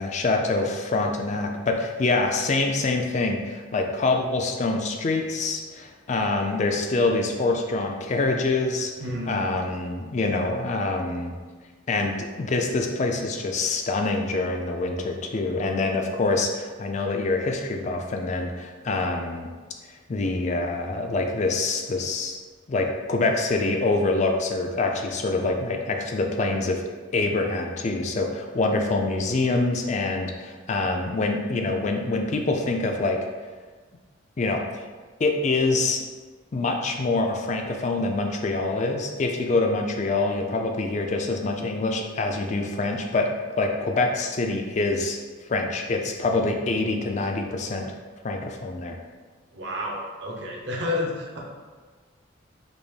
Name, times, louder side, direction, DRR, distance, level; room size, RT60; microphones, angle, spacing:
voice 1, 0.0-8.9 9.2-11.3 11.9-19.5 20.1-22.4 22.7-33.2 34.4-34.8 35.2-36.0 36.5-43.3 43.6-45.2 45.5-47.9 48.2-49.0, left 3 dB, 35° left, 3 dB, 0.4 m, -25 dB
voice 2, 9.0-9.5 49.5-51.4, left 2 dB, 60° right, -2 dB, 0.8 m, -30 dB
5.1 x 2.0 x 3.2 m, 1.4 s
head